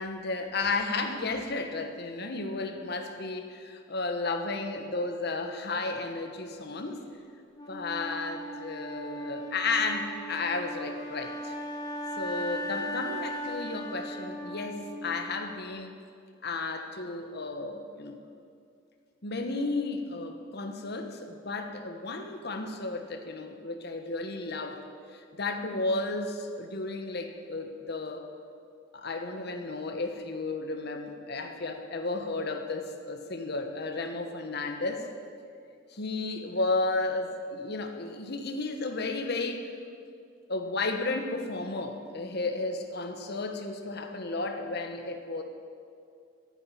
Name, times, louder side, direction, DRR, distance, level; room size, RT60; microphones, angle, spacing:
voice 1, 0.0-7.0 7.7-11.5 12.2-16.0 16.4-18.2 19.2-24.8 25.1-28.2 28.9-35.1 35.9-39.7 40.5-45.4, left 3 dB, 55° left, 5 dB, 1.3 m, -33 dB
Wind instrument woodwind instrument, 7.5-15.6, equal, 20° left, 2.2 m, -38 dB
11.5 x 8.9 x 9.9 m, 2.3 s
head